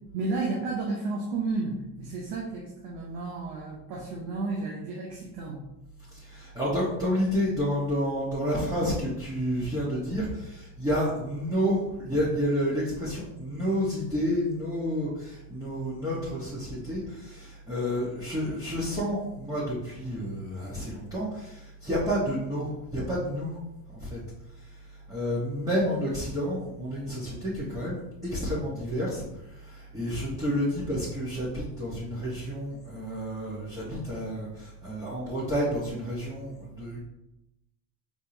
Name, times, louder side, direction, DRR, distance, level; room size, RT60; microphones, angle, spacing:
voice 1, 0.1-5.6, right 3 dB, 85° right, -1 dB, 1.0 m, -32 dB
voice 2, 6.1-23.6 23.9-24.2 25.1-29.2 29.6-37.0, equal, 10° right, -8 dB, 1.3 m, -30 dB
4.7 x 3.6 x 2.8 m, 0.92 s
supercardioid pair, 95°, 47 cm